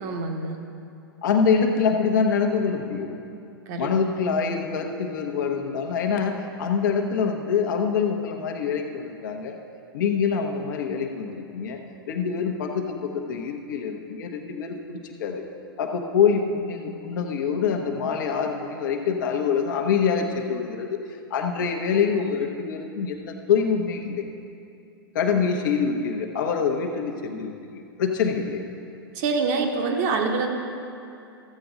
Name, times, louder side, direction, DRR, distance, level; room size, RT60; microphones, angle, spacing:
voice 1, 0.0-0.6 3.7-3.9 29.2-30.5, right 4 dB, 45° right, 3 dB, 1.1 m, -25 dB
voice 2, 1.2-3.1 3.8-9.6 9.9-11.8 12.1-15.4 15.8-21.0 21.3-24.2 25.1-28.6, left 6 dB, 55° left, 3 dB, 1.0 m, -25 dB
14.0 x 7.8 x 3.8 m, 2.6 s
figure-of-eight pair, 100°, 12 cm